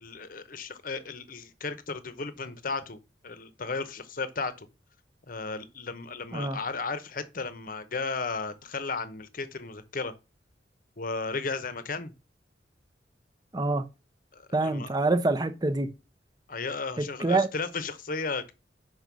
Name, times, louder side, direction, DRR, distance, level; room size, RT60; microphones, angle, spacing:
voice 1, 0.0-3.0 3.2-4.7 5.3-10.1 11.0-12.1 14.3-14.9 16.5-18.5, left 4 dB, 50° left, 0.9 m, -34 dB
voice 2, 13.5-13.8 14.5-15.9 17.0-17.5, right 2 dB, 20° right, 0.7 m, -26 dB
5.3 x 5.2 x 6.1 m
head